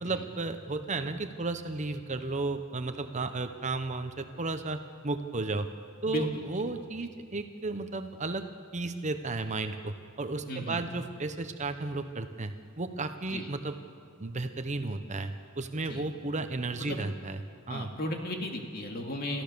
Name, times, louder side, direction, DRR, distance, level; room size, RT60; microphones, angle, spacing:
voice 1, 0.0-5.7 6.0-8.4 8.7-13.8 14.2-17.4 17.7-17.9, right 3 dB, 35° right, 8 dB, 0.9 m, -34 dB
voice 2, 6.1-6.4 10.5-10.8 13.3-13.5 15.8-16.0 16.9-17.0 17.7-19.4, left 1 dB, 45° left, 2 dB, 2.3 m, -35 dB
29.0 x 14.0 x 6.9 m, 2.2 s
head